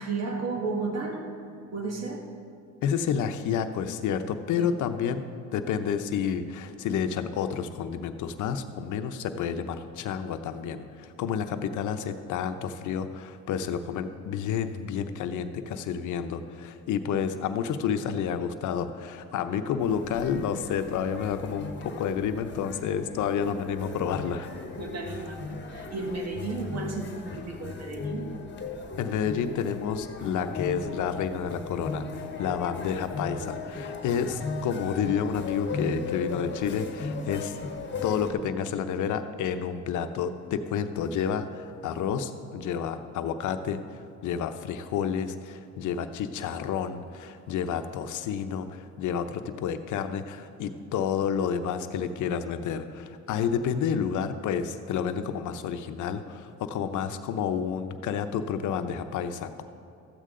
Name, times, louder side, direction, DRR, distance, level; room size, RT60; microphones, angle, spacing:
voice 1, 0.0-1.4 1.7-2.3 4.6-4.7 24.8-28.3, right 3 dB, 60° right, 2 dB, 1.5 m, -33 dB
voice 2, 2.8-5.3 5.5-24.5 29.0-37.6 38.0-59.6, left 7 dB, 80° left, 9 dB, 0.7 m, -30 dB
sound 1, 19.8-38.3, left 3 dB, 35° left, 1.1 m, -37 dB
13.5 x 8.3 x 3.8 m, 2.5 s
cardioid pair, 90°, 30 cm